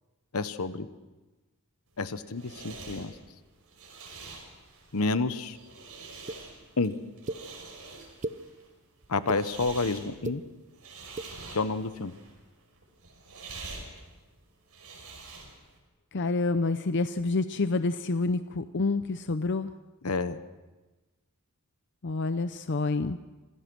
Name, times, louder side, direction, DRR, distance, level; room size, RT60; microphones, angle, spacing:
voice 1, 0.3-0.9 2.0-3.1 4.9-5.6 6.8-6.9 9.1-10.4 11.5-12.1 20.0-20.4, left 3 dB, 80° left, 13 dB, 1.0 m, -29 dB
sound 1, 1.9-15.8, right 3 dB, 85° right, 5.7 m, -46 dB
sound 2, 6.3-6.4 7.3-7.4 8.0-8.4 9.0-9.4 10.1-10.4 11.1-11.3, right 2 dB, 35° right, 0.8 m, -35 dB
voice 2, 16.1-19.7 22.0-23.2, left 3 dB, 55° left, 11 dB, 0.6 m, -28 dB
26.0 x 16.5 x 6.2 m, 1.2 s
head